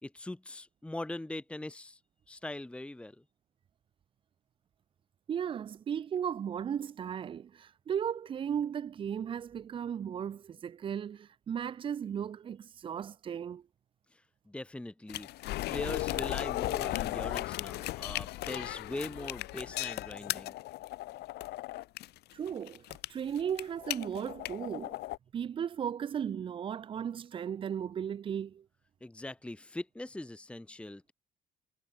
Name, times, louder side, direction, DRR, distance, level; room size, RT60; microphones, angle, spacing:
voice 1, 0.0-2.0 2.3-3.2 14.1-15.3 15.7-20.5 29.0-31.1, left 1 dB, 5° left, 1.3 m, -41 dB
voice 2, 5.3-13.6 22.3-22.8 23.1-25.0 25.3-28.6, right 8 dB, 30° right, 0.4 m, -36 dB
sound 1, 15.1-25.2, left 17 dB, 75° left, 1.0 m, -36 dB
cardioid pair, 110°, 17 cm